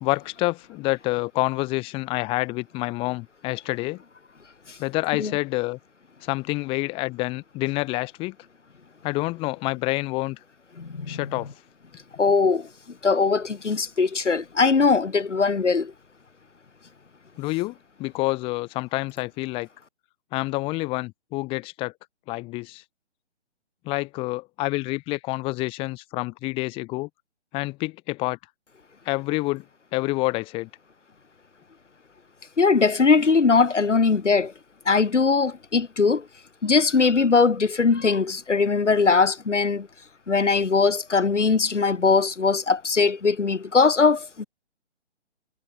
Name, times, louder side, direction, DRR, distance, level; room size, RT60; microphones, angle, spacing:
voice 1, 0.0-4.0 4.8-5.8 6.2-8.4 9.0-10.4 11.1-11.5 17.4-19.7 20.3-21.9 22.3-22.8 23.8-27.1 27.5-28.4 29.1-29.6 29.9-30.7, left 22 dB, 15° left, 2.1 m, -28 dB
voice 2, 10.8-11.2 12.2-12.7 13.0-15.9 32.6-34.5 34.9-36.3 36.6-39.9 40.3-44.4, left 4 dB, 85° left, 3.7 m, -20 dB
hypercardioid pair, 155°, 35 cm